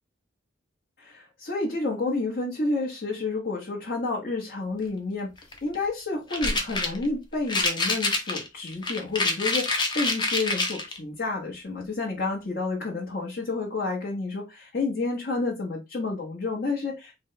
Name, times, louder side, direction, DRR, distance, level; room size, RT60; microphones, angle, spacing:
voice 1, 1.0-5.3 5.6-17.2, left 3 dB, 50° left, 1.0 m, -30 dB
sound 1, 5.4-5.7 6.3-7.1 7.5-11.0, left 3 dB, 20° left, 0.6 m, -26 dB
3.9 x 2.2 x 3.8 m
head